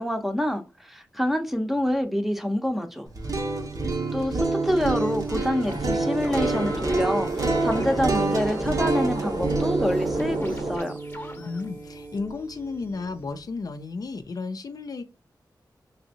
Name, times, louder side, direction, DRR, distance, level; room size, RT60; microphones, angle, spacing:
voice 1, 0.0-3.1 4.1-10.9, equal, 5° right, 0.6 m, -26 dB
sound 1, 3.1-13.1, right 3 dB, 50° right, 0.8 m, -28 dB
sound 2, 5.0-13.5, left 1 dB, 30° left, 0.8 m, -45 dB
sound 3, 5.7-10.8, right 1 dB, 65° right, 1.2 m, -32 dB
voice 2, 11.4-15.0, left 4 dB, 55° left, 0.4 m, -33 dB
3.4 x 2.7 x 2.7 m
wide cardioid pair, 75°, 8 cm